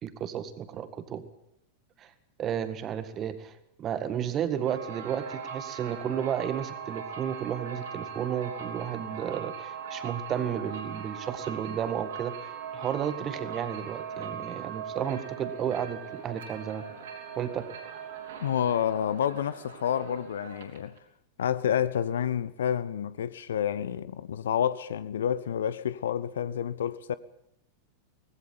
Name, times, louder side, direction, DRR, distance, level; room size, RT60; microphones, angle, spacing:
voice 1, 0.0-1.2 2.0-2.1 2.4-12.3 12.7-16.8 17.4-17.6, right 9 dB, 30° right, 1.8 m, -33 dB
sound 1, 4.6-21.0, right 7 dB, 60° right, 3.9 m, -40 dB
voice 2, 18.4-20.9 21.4-27.1, left 9 dB, 65° left, 0.8 m, -29 dB
18.5 x 16.0 x 8.8 m
figure-of-eight pair, 90°, 0 cm